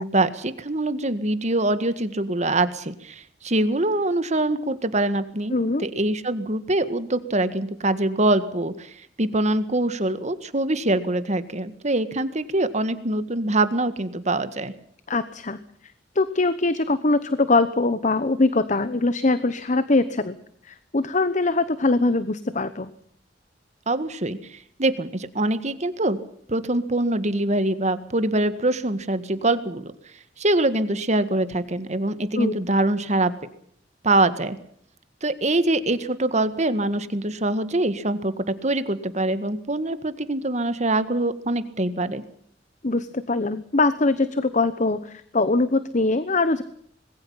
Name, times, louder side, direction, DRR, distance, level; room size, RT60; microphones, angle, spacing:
voice 1, 0.0-14.7 23.9-26.2 26.5-29.9 30.4-33.3 34.0-34.6 35.2-42.2, right 2 dB, 40° right, 12 dB, 1.8 m, -24 dB
voice 2, 5.5-5.8 15.1-15.6 16.1-20.4 20.6-22.9 32.4-32.5 42.8-46.6, left 3 dB, 45° left, 13 dB, 1.0 m, -22 dB
26.0 x 20.5 x 5.7 m, 0.64 s
head